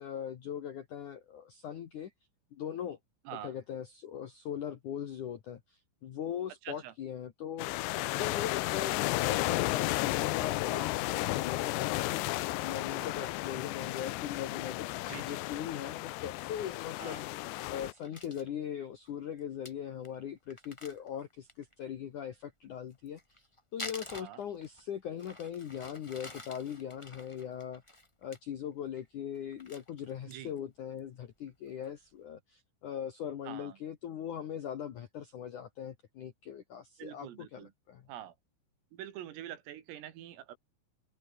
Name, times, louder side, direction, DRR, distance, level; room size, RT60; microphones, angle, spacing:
voice 1, 0.0-2.1 2.5-3.0 3.4-14.9 15.2-23.2 23.7-27.8 28.2-38.0, left 9 dB, 70° left, 1.9 m, -40 dB
voice 2, 6.6-6.9 13.0-13.3 15.1-15.4 17.0-17.2 24.1-24.4 30.3-30.5 33.5-33.8 37.0-37.7 38.1-38.3 38.9-40.6, right 12 dB, 80° right, 4.9 m, -45 dB
sound 1, 7.6-17.9, left 20 dB, 90° left, 2.4 m, -33 dB
Crumpling crinkling, 17.8-18.5 19.0-19.1 19.4-19.5 19.6-19.7 20.0-20.1 20.5-21.7 22.9-24.8 25.2-28.4 28.8-29.0 29.3-30.6 31.0-31.1 31.5-31.9, left 1 dB, 25° left, 0.6 m, -48 dB
omnidirectional pair, 5.9 m